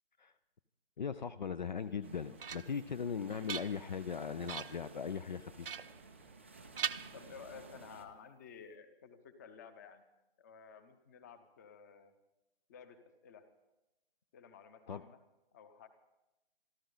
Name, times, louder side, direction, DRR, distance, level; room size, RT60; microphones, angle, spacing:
voice 1, 1.0-5.7 14.9-15.0, left 6 dB, 50° left, 15 dB, 0.6 m, -39 dB
sound 1, 1.9-2.9 3.3-4.1 4.5-4.9 5.6-6.5 6.8-7.7, right 7 dB, 65° right, 0.6 m, -42 dB
sound 2, 2.0-8.1, right 3 dB, 15° right, 0.4 m, -55 dB
voice 2, 7.1-10.0 10.4-12.1 12.7-13.5 14.3-15.2 15.5-15.9, left 6 dB, 15° left, 11 dB, 0.8 m, -54 dB
27.0 x 12.0 x 4.0 m, 0.97 s
figure-of-eight pair, 155°, 30 cm